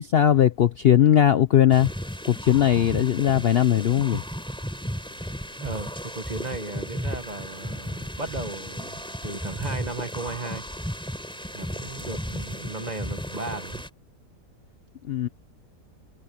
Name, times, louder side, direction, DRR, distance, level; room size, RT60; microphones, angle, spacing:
voice 1, 0.0-1.9 2.3-4.2 15.0-15.3, left 10 dB, 80° left, 0.5 m, -19 dB
sound 1, 1.7-13.9, equal, 5° left, 3.7 m, -34 dB
voice 2, 5.6-10.6 11.5-13.8, right 3 dB, 25° right, 1.5 m, -35 dB
omnidirectional pair, 1.8 m